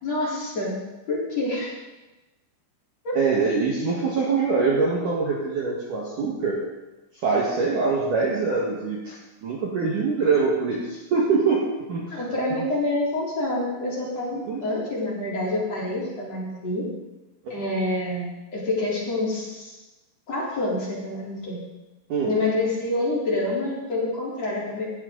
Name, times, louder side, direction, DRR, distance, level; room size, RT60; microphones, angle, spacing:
voice 1, 0.0-0.8 1.1-1.7 3.0-3.2 12.1-16.8 17.5-19.8 20.3-21.6 22.2-24.8, left 2 dB, 35° left, -6 dB, 4.3 m, -27 dB
voice 2, 3.1-6.6 7.2-11.6 11.9-12.2 12.6-12.7 14.5-14.6 17.4-17.6 22.1-22.3, right 4 dB, 60° right, -3 dB, 2.4 m, -24 dB
17.0 x 14.5 x 3.9 m, 1.1 s
omnidirectional pair, 5.8 m